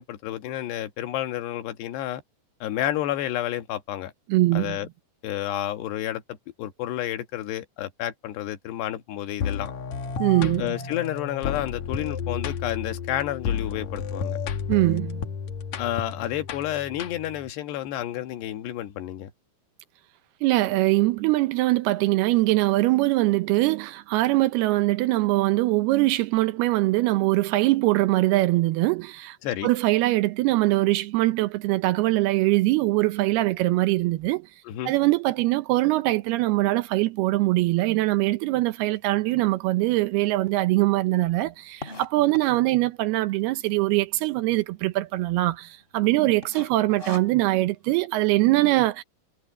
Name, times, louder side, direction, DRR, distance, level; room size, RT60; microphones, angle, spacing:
voice 1, 0.0-2.2 2.6-4.1 4.5-4.9 5.2-9.7 10.6-14.4 15.8-19.3 29.4-29.7 34.7-34.9, left 12 dB, 80° left, 3.5 m, -30 dB
voice 2, 4.3-4.8 10.2-10.7 14.7-15.2 20.4-29.4 29.6-34.5 34.9-49.0, right 18 dB, 80° right, 2.5 m, -22 dB
sound 1, 9.4-17.5, left 7 dB, 60° left, 2.0 m, -32 dB
sound 2, 39.3-39.4 40.0-40.1 40.3-40.4 40.6-42.8 43.4-43.8 44.1-44.2 44.4-44.6 45.1-45.5 45.7-46.0 46.4-47.7, left 2 dB, 15° left, 3.3 m, -41 dB
omnidirectional pair, 4.8 m